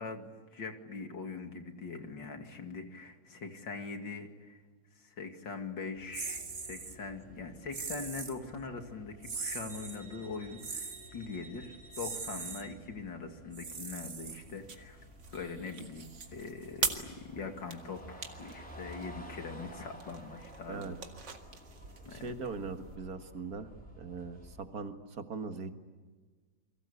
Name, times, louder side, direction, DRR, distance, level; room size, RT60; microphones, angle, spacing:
voice 1, 0.0-4.6 5.0-15.0 15.3-21.0 22.0-22.3, left 4 dB, 80° left, 5 dB, 3.1 m, -42 dB
sound 1, 6.0-24.7, equal, 5° left, 4.9 m, -53 dB
sound 2, 6.1-7.0 7.7-8.4 9.2-10.0 10.6-11.1 11.9-12.6 13.5-14.7, right 4 dB, 35° right, 1.7 m, -40 dB
sound 3, 14.1-23.0, right 5 dB, 70° right, 2.8 m, -43 dB
voice 2, 22.1-23.7 24.0-25.7, right 4 dB, 55° right, 7 dB, 2.2 m, -40 dB
29.5 x 23.5 x 8.5 m, 1.4 s
omnidirectional pair, 2.0 m